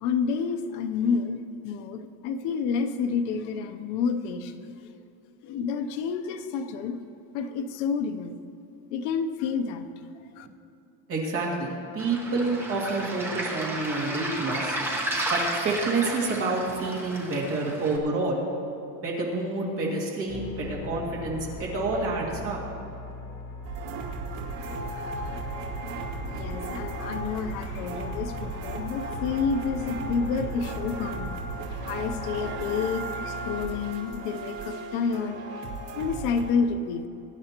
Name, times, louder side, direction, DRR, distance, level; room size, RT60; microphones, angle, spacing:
voice 1, 0.0-4.7 5.4-7.0 7.3-8.4 8.9-10.1 10.4-10.5 26.2-31.4 31.8-35.4 36.0-37.1, left 5 dB, 50° left, 6 dB, 0.8 m, -29 dB
voice 2, 11.1-14.8 15.3-18.4 19.0-22.6, right 3 dB, 30° right, -3 dB, 2.2 m, -28 dB
Waves surf, 12.0-18.0, right 1 dB, 5° right, 0.9 m, -32 dB
sound 1, 20.3-33.9, left 3 dB, 35° left, 1.5 m, -39 dB
sound 2, 23.6-36.5, right 3 dB, 55° right, 2.6 m, -36 dB
22.0 x 10.5 x 2.9 m, 2.8 s
cardioid pair, 180°, 48 cm